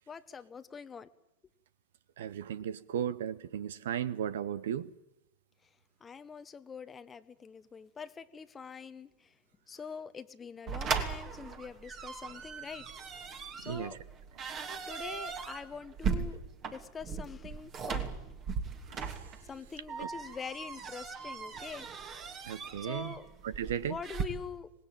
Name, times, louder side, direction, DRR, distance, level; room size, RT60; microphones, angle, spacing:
voice 1, 0.1-1.1 6.0-9.3 9.7-12.9 13.6-14.0 14.9-16.4 16.7-18.2 19.4-22.0 22.5-23.3 23.8-24.7, left 6 dB, 20° left, 1.0 m, -44 dB
voice 2, 2.2-4.9 13.6-13.9 18.9-19.2 20.0-20.1 22.5-23.1 23.4-24.0, right 9 dB, 70° right, 0.9 m, -35 dB
sound 1, 10.7-24.2, right 6 dB, 35° right, 2.8 m, -38 dB
25.5 x 19.0 x 9.0 m
figure-of-eight pair, 90°, 0 cm